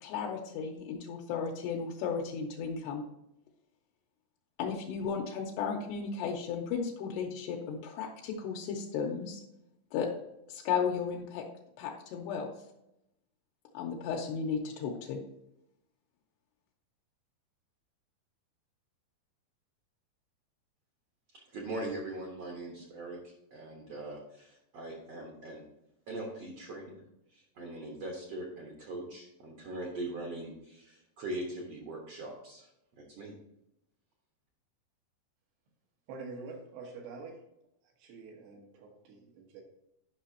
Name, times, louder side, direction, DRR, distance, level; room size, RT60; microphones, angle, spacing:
voice 1, 0.0-3.0 4.6-9.4 9.9-10.1 10.5-11.5 11.8-12.5 13.7-15.2, left 6 dB, 85° left, -1 dB, 2.9 m, -34 dB
voice 2, 21.3-25.6 26.1-27.0 27.3-32.7 33.0-33.3, right 2 dB, 65° right, -1 dB, 1.6 m, -41 dB
voice 3, 36.1-37.4 37.8-39.6, right 4 dB, 80° right, -1 dB, 3.5 m, -46 dB
11.0 x 5.6 x 2.8 m, 0.82 s
omnidirectional pair, 4.8 m